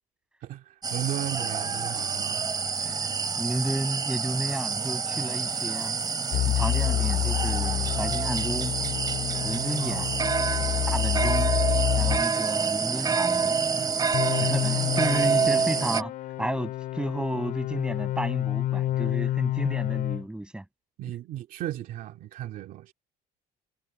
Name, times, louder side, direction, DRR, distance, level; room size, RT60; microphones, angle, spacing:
voice 1, 0.4-2.5 9.8-10.3 21.0-22.9, right 13 dB, 55° right, 2.3 m, -35 dB
sound 1, 0.8-16.0, right 5 dB, 25° right, 2.9 m, -27 dB
voice 2, 3.4-5.9 6.5-8.7 9.4-10.1 10.9-11.5 12.0-13.6 14.4-16.1 16.4-20.6, right 1 dB, 5° right, 6.3 m, -32 dB
sound 2, 6.3-12.3 14.1-20.2, left 14 dB, 60° left, 3.8 m, -28 dB
cardioid pair, 145°, 17 cm